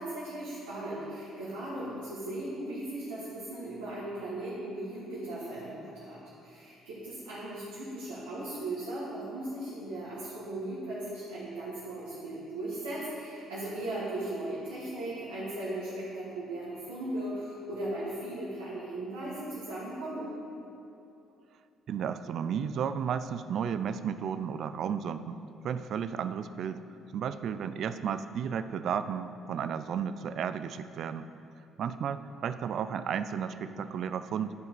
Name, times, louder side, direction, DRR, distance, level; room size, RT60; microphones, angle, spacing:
voice 1, 0.0-20.3, right 1 dB, 85° right, -10 dB, 1.7 m, -37 dB
voice 2, 21.9-25.4 25.6-26.8 27.1-31.3 31.8-34.5, right 7 dB, 60° right, 12 dB, 0.3 m, -33 dB
11.0 x 4.7 x 4.6 m, 2.8 s
hypercardioid pair, 55°, 0 cm